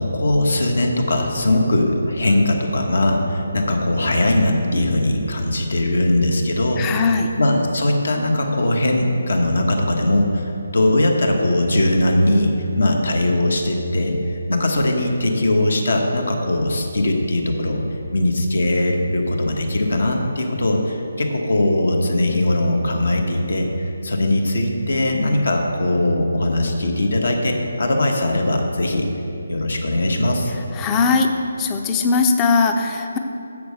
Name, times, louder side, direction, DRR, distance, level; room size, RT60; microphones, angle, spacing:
voice 1, 0.0-10.4 10.7-14.2 14.5-17.8 18.1-29.1 29.5-30.5, left 1 dB, 60° left, 2 dB, 1.3 m, -20 dB
voice 2, 6.8-7.3 30.8-31.3 31.6-33.2, left 4 dB, 15° left, 5 dB, 0.6 m, -19 dB
7.3 x 6.7 x 6.5 m, 2.8 s
figure-of-eight pair, 150°, 0 cm